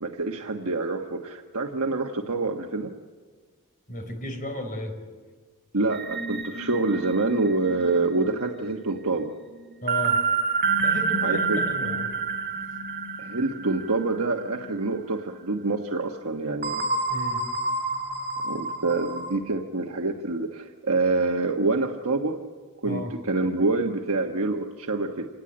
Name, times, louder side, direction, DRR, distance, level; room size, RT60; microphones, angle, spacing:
voice 1, 0.0-2.9 5.7-9.3 11.2-11.6 13.2-16.9 18.4-22.4 22.8-25.3, right 3 dB, 70° right, 3 dB, 1.4 m, -26 dB
voice 2, 3.9-4.9 9.8-10.2 10.8-12.2 17.1-17.4 22.8-23.1, left 1 dB, 40° left, 6 dB, 4.3 m, -33 dB
sound 1, 5.9-14.8 15.2-15.4 16.6-19.4, right 4 dB, 45° right, 2.2 m, -29 dB
27.5 x 19.0 x 8.8 m, 1.4 s
head